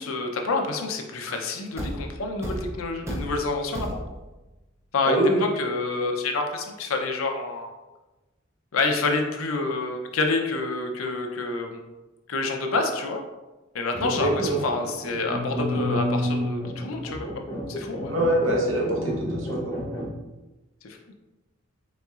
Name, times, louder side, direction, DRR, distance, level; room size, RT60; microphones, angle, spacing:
voice 1, 0.0-4.0 4.9-7.7 8.7-11.8 12.3-13.2 13.7-17.3 17.7-18.1, left 3 dB, 80° left, 3 dB, 0.6 m, -28 dB
Thump thud, 1.8-4.4, equal, 15° right, 0.4 m, -34 dB
voice 2, 5.0-5.5 14.0-14.6 18.1-19.8, right 1 dB, 65° right, -2 dB, 0.9 m, -24 dB
sound 1, 13.9-20.1, left 1 dB, 15° left, 0.7 m, -31 dB
4.2 x 3.7 x 2.4 m, 1.1 s
head